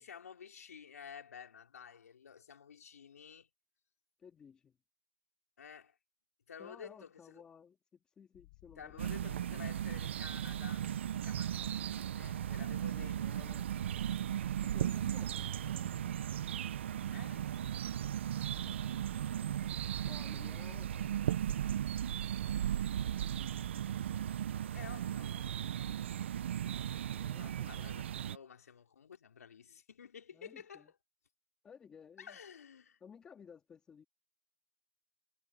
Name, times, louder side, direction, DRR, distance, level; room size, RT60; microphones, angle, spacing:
voice 1, 0.0-3.5 5.6-6.0 6.5-7.1 8.8-10.9 11.2-13.5 17.1-17.7 24.7-25.5 27.3-30.9 32.2-33.0, left 7 dB, 70° left, 3.8 m, -52 dB
voice 2, 4.2-4.8 6.6-9.7 12.7-13.8 14.6-16.2 18.6-18.9 20.0-21.3 25.8-26.2 27.1-28.0 30.3-30.9 31.6-32.4 33.0-34.0, left 7 dB, 10° left, 2.0 m, -57 dB
sound 1, 8.3-24.4, left 24 dB, 30° left, 4.8 m, -60 dB
sound 2, 9.0-28.4, right 10 dB, 45° right, 0.8 m, -36 dB
hypercardioid pair, 165°, 9 cm